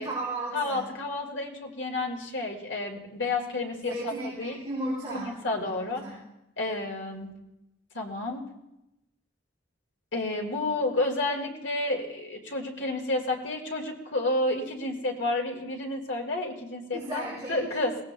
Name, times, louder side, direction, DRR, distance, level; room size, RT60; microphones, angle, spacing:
voice 1, 0.0-0.9 3.7-5.3 5.6-6.2 16.9-17.6, right 2 dB, 20° right, -9 dB, 4.2 m, -35 dB
voice 2, 0.5-4.1 4.4-4.6 5.1-6.0 6.6-7.3 7.9-8.4 10.1-17.9, left 2 dB, 75° left, 1 dB, 1.9 m, -30 dB
21.5 x 17.0 x 2.2 m, 0.89 s
head